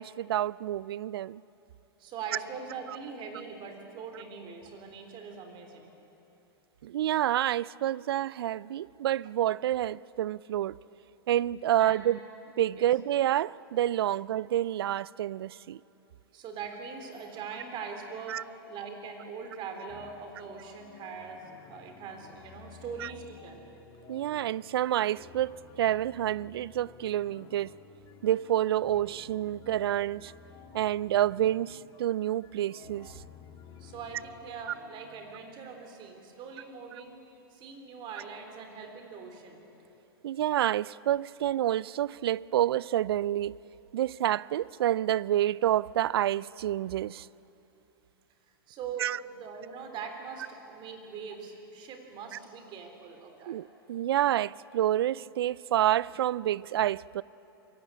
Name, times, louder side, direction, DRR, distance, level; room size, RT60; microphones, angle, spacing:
voice 1, 0.0-1.4 6.8-10.8 11.3-12.2 12.6-15.8 18.3-18.4 23.0-23.1 24.1-27.7 28.2-30.3 30.7-33.1 40.2-43.6 43.9-47.3 49.0-49.2 53.5-57.2, right 12 dB, 75° right, 0.4 m, -28 dB
voice 2, 2.0-5.9 11.8-12.1 12.8-12.9 16.3-23.6 33.8-37.2 37.5-39.6 48.7-53.6, right 5 dB, 40° right, 3.6 m, -42 dB
sound 1, 19.9-35.5, left 6 dB, 35° left, 2.1 m, -53 dB
22.5 x 16.0 x 9.8 m
hypercardioid pair, 115°, 13 cm